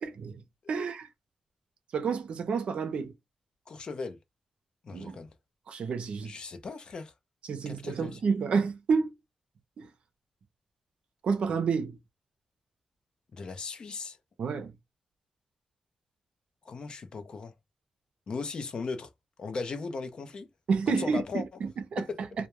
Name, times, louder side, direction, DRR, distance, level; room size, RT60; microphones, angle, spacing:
voice 1, 0.0-0.4 0.7-1.1 1.9-3.1 4.9-5.2 5.7-6.3 7.5-9.1 9.8-9.9 11.2-12.0 14.4-14.7 20.7-22.0 22.4-22.5, right 5 dB, 65° right, 0.5 m, -29 dB
voice 2, 3.7-4.2 4.8-5.3 6.2-7.1 7.7-8.2 13.3-14.2 16.6-17.5 18.3-19.1 19.4-20.5 20.9-21.4 22.0-22.2, left 4 dB, 45° left, 0.5 m, -37 dB
2.2 x 2.1 x 2.9 m
wide cardioid pair, 140°, 2 cm